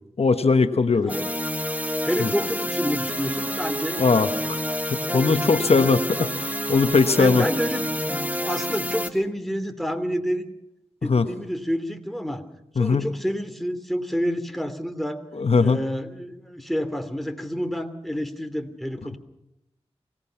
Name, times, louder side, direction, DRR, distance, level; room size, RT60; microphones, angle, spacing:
voice 1, 0.2-1.1 2.2-2.3 4.0-4.3 4.9-7.4 11.1-11.3 12.8-13.1 15.3-15.8, left 4 dB, 70° left, 9 dB, 1.3 m, -20 dB
sound 1, 1.1-9.1, equal, 15° right, 2.5 m, -28 dB
voice 2, 2.0-4.0 5.7-5.9 7.2-10.4 11.0-12.4 12.7-15.2 15.6-19.2, equal, ahead, 7 dB, 2.9 m, -28 dB
25.0 x 18.5 x 5.9 m, 0.86 s
cardioid pair, 45°, 11 cm